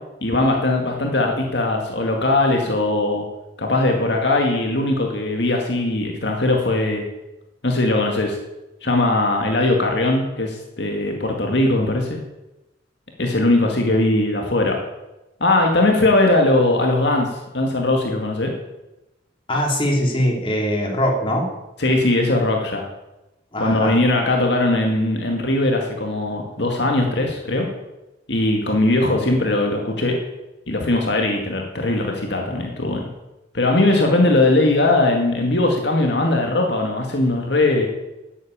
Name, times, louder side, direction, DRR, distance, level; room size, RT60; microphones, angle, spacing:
voice 1, 0.2-3.2 3.6-7.0 7.6-8.4 8.8-12.2 13.2-14.7 15.4-17.3 17.5-18.5 21.8-22.9 23.6-27.7 28.3-30.2 30.7-33.1 33.5-37.9, left 2 dB, 60° left, 2 dB, 2.1 m, -20 dB
voice 2, 19.5-21.5 23.5-24.0, equal, 25° left, 0 dB, 3.1 m, -21 dB
12.5 x 9.0 x 8.7 m, 0.98 s
head